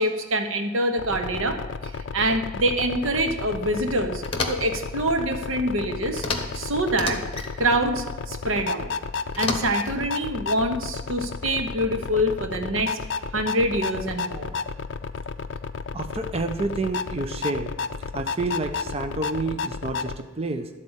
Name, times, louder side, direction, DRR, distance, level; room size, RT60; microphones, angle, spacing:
voice 1, 0.0-1.6 2.1-4.2 4.5-6.2 6.5-7.2 7.6-8.9 9.4-13.0 13.3-14.5, right 1 dB, 90° right, 6 dB, 1.1 m, -25 dB
sound 1, 1.0-20.2, left 5 dB, 60° left, 0.4 m, -32 dB
sound 2, 4.2-4.8 6.2-6.6 6.9-7.5 9.3-10.0, left 3 dB, 30° left, 1.1 m, -30 dB
voice 2, 15.9-17.7 18.1-20.7, right 3 dB, 30° right, 6 dB, 0.5 m, -29 dB
12.0 x 4.3 x 8.1 m, 1.3 s
head